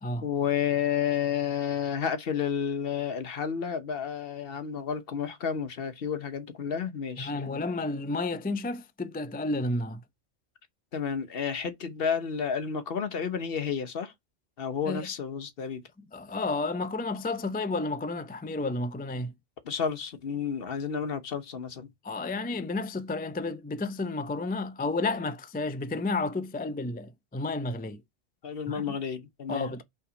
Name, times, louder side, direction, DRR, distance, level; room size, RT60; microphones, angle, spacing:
voice 1, 0.2-7.6 10.9-14.1 14.6-15.8 19.6-21.9 28.4-29.8, left 7 dB, 60° left, 1.0 m, -31 dB
voice 2, 7.2-10.0 14.9-15.1 16.0-19.3 22.0-28.0 28.7-29.0 29.5-29.8, left 2 dB, 15° left, 0.4 m, -31 dB
5.6 x 3.5 x 5.0 m
omnidirectional pair, 1.1 m